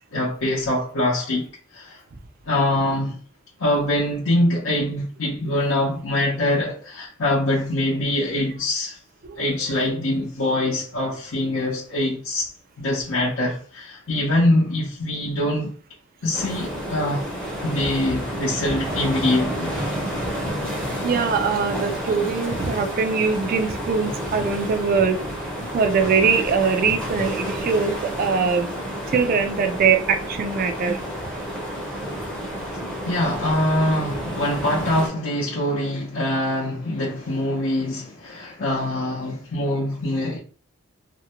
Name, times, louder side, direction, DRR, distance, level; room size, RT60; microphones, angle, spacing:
voice 1, 0.1-1.5 1.7-2.0 2.5-3.2 3.6-9.0 9.4-12.5 12.8-15.7 16.2-17.3 17.6-19.8 33.0-40.4, left 1 dB, 70° left, 0.6 m, -24 dB
sound 1, 16.3-35.1, equal, 5° left, 0.6 m, -30 dB
voice 2, 21.0-25.2 25.7-28.7 29.1-31.0, right 5 dB, 40° right, 0.3 m, -22 dB
2.5 x 2.1 x 2.8 m
head